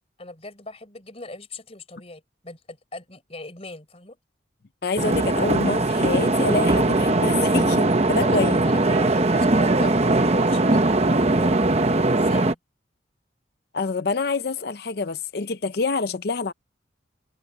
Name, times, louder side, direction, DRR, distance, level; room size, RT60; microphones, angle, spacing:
voice 1, 0.2-4.2 8.2-11.6 12.1-12.6, left 2 dB, 30° left, 4.1 m, -39 dB
voice 2, 4.8-8.6 13.7-16.5, left 3 dB, 55° left, 0.6 m, -26 dB
sound 1, 5.0-12.5, right 2 dB, 35° right, 0.9 m, -20 dB
head